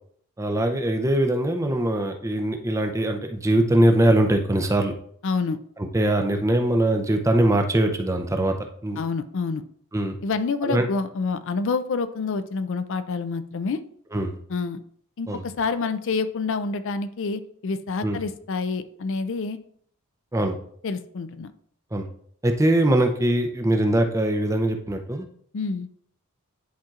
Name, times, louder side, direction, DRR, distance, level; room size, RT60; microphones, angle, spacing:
voice 1, 0.4-4.9 5.8-9.0 9.9-10.2 10.6-10.9 14.1-14.4 15.3-15.4 18.0-18.2 20.3-20.6 21.9-22.1 22.4-25.3, right 1 dB, 15° right, 4 dB, 0.5 m, -22 dB
voice 2, 5.2-5.6 9.0-9.6 10.2-13.8 14.5-14.8 15.2-19.6 20.8-21.5 25.5-25.9, left 4 dB, 55° left, 11 dB, 0.4 m, -27 dB
10.5 x 4.3 x 2.4 m, 0.63 s
head